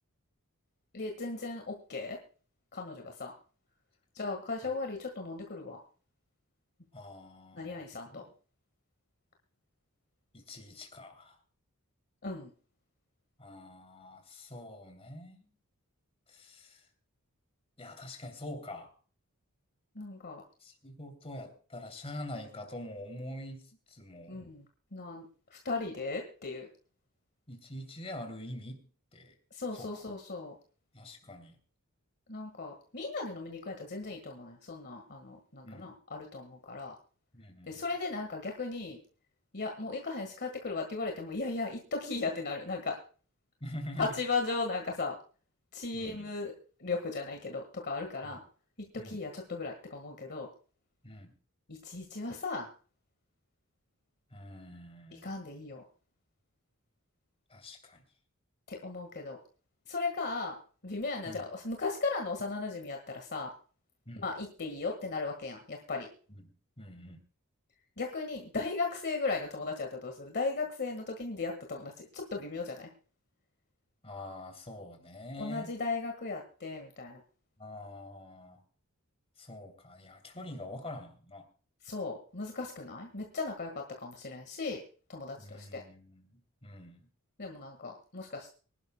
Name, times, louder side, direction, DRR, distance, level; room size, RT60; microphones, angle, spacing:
voice 1, 0.9-2.2 2.7-3.3 4.1-5.8 7.5-8.2 12.2-12.5 19.9-20.4 24.3-24.6 24.9-25.2 25.5-26.7 29.5-30.6 32.3-36.9 37.7-39.0 39.5-43.0 44.0-45.2 45.7-46.5 46.8-48.4 49.0-50.5 51.7-52.7 55.1-55.8 58.7-59.4 59.9-60.5 60.8-63.5 64.2-66.1 68.0-72.9 75.4-77.2 81.8-84.8 85.1-85.8 87.4-88.5, left 3 dB, 50° left, 3 dB, 1.7 m, -36 dB
voice 2, 6.9-8.3 10.3-11.4 13.4-15.5 16.3-16.9 17.8-18.9 20.6-24.4 27.5-29.3 29.8-30.0 30.9-31.5 35.6-35.9 37.3-37.8 43.6-44.1 45.9-46.3 48.2-48.4 49.0-49.2 51.0-51.3 54.3-55.3 57.5-58.0 61.2-61.5 64.1-64.3 66.3-67.2 74.0-75.7 77.6-78.6 79.4-81.5 85.4-87.1, left 1 dB, 30° left, 5 dB, 2.9 m, -45 dB
25.0 x 11.5 x 2.2 m, 0.41 s
head